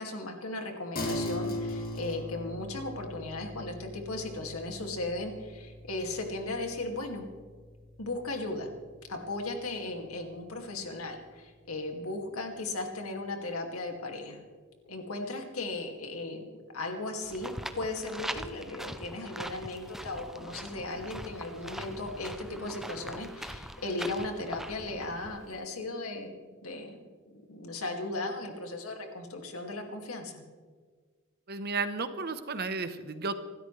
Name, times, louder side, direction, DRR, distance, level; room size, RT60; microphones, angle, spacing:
voice 1, 0.0-7.3 8.0-8.7 9.1-14.5 14.9-16.4 16.7-26.3 26.6-27.0 27.5-30.4, left 2 dB, 90° left, 3 dB, 2.4 m, -36 dB
sound 1, 1.0-10.7, left 1 dB, 45° left, 2.5 m, -40 dB
sound 2, 17.2-25.6, equal, ahead, 0.6 m, -42 dB
voice 2, 31.5-33.4, right 4 dB, 50° right, 10 dB, 1.0 m, -33 dB
26.0 x 13.0 x 3.3 m, 1.5 s
head